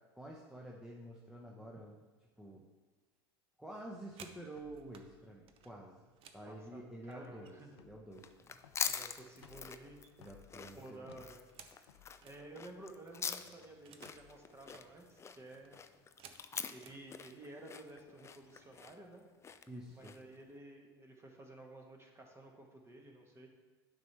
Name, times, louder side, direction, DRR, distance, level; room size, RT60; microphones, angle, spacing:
voice 1, 0.1-2.0 2.4-2.6 3.6-6.0 6.3-8.6 10.2-11.2 19.7-20.2, right 1 dB, 5° right, -3 dB, 0.9 m, -49 dB
sound 1, 3.8-5.1 5.5-7.8 8.1-9.1 9.4-12.4 12.8-12.9 13.1-14.3 14.6-14.9 15.4-17.0 17.8-18.0 18.4-18.7 19.0-19.5, right 7 dB, 45° right, 0.7 m, -59 dB
sound 2, 4.5-15.7, left 9 dB, 85° left, 0.5 m, -65 dB
voice 2, 6.5-7.7 8.9-10.0 10.7-11.4 11.8-11.9 12.2-15.8 16.7-19.6 19.9-23.5, right 2 dB, 20° right, 1 dB, 1.3 m, -53 dB
sound 3, 8.1-20.4, left 6 dB, 20° left, 0.4 m, -44 dB
9.2 x 5.9 x 3.3 m, 1.3 s
hypercardioid pair, 90°, 13 cm